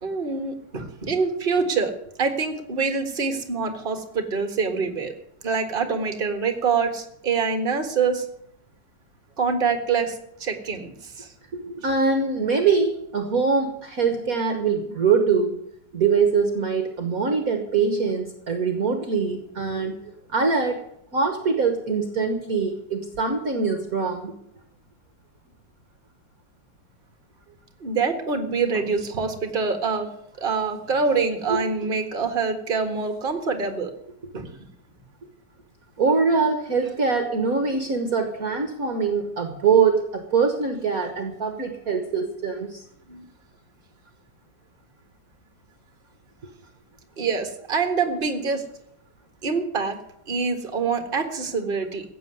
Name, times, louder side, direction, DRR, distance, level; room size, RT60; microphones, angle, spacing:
voice 1, 0.0-1.9 2.2-5.1 5.4-8.3 9.4-11.3 27.8-30.1 30.4-33.9 34.3-34.7 43.1-43.3 47.2-48.6 49.4-50.0 50.3-52.0, right 5 dB, 30° right, 7 dB, 1.8 m, -25 dB
voice 2, 11.5-15.6 15.9-20.8 21.1-24.3 29.1-29.2 31.5-31.6 36.0-42.8, right 5 dB, 50° right, 7 dB, 1.6 m, -23 dB
15.5 x 7.7 x 9.3 m, 0.76 s
omnidirectional pair, 2.1 m